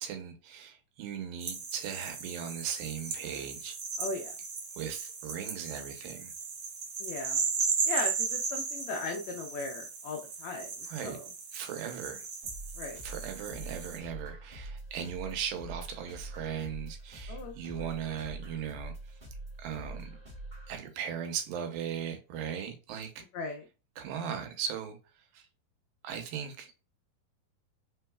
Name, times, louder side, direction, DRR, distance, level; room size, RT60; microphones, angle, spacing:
voice 1, 0.0-3.8 4.8-6.3 10.9-11.2 11.5-12.3 13.0-18.9 19.6-20.1 20.7-23.2 24.0-25.0 25.3-25.5 26.0-26.7, right 8 dB, 85° right, 2.6 m, -38 dB
sound 1, 1.4-14.0, right 5 dB, 55° right, 2.0 m, -36 dB
voice 2, 4.0-4.3 7.0-7.4 7.8-11.3 12.8-13.0 17.3-17.9 23.3-23.6, left 3 dB, 85° left, 1.6 m, -38 dB
sound 2, 12.4-20.8, right 2 dB, 35° right, 0.7 m, -44 dB
5.1 x 3.8 x 2.3 m
omnidirectional pair, 4.0 m